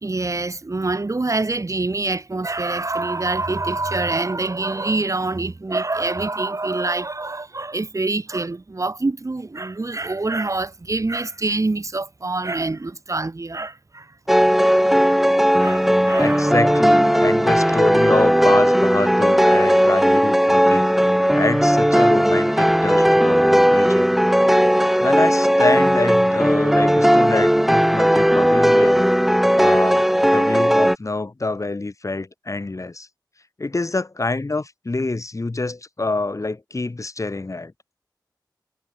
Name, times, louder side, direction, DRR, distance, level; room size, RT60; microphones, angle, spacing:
voice 1, 0.0-14.1 15.0-15.2 15.6-16.8, right 3 dB, 45° right, 1.9 m, -25 dB
sound 1, 14.3-30.9, equal, 5° right, 0.6 m, -16 dB
voice 2, 16.2-20.9 21.3-24.1 25.0-29.1 29.5-33.1 33.6-37.7, left 2 dB, 45° left, 3.0 m, -26 dB
wide cardioid pair, 65°, 8 cm